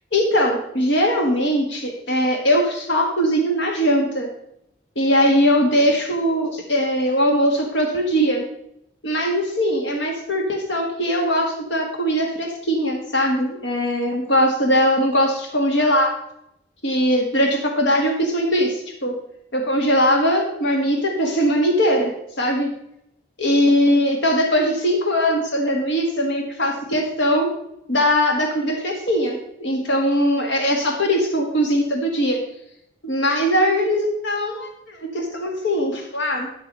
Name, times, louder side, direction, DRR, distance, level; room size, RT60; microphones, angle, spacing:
voice 1, 0.1-4.3 5.0-8.4 9.0-16.1 16.8-19.1 19.5-22.1 22.4-22.7 23.4-27.5 27.9-32.4 33.0-36.5, equal, 90° left, 2 dB, 1.7 m, -20 dB
11.5 x 6.2 x 5.4 m, 0.79 s
head